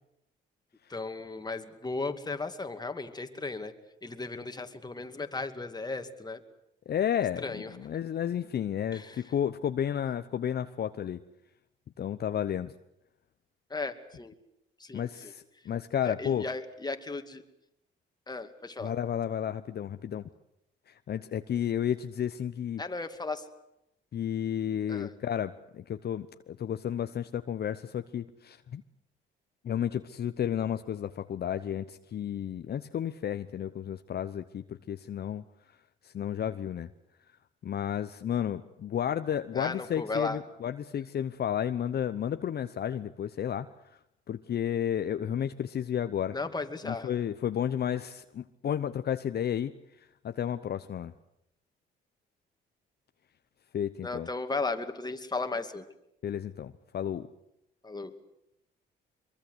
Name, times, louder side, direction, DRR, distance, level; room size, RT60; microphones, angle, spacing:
voice 1, 0.9-3.7 4.0-6.4 7.4-7.7 8.9-9.2 13.7-14.3 14.8-15.3 16.0-17.4 18.3-18.9 22.8-23.4 24.9-25.1 39.5-40.4 46.3-47.1 54.0-55.9 57.8-58.1, left 3 dB, 20° left, 7 dB, 2.4 m, -35 dB
voice 2, 6.9-11.2 12.0-12.7 14.9-16.5 18.8-20.3 20.9-22.8 24.1-28.8 29.6-35.4 36.0-36.9 37.6-43.7 43.9-44.0 44.3-46.4 46.8-49.7 50.2-51.1 53.7-54.3 56.2-57.3, left 9 dB, 55° left, 9 dB, 0.9 m, -32 dB
23.5 x 23.0 x 8.1 m, 0.83 s
cardioid pair, 90°, 20 cm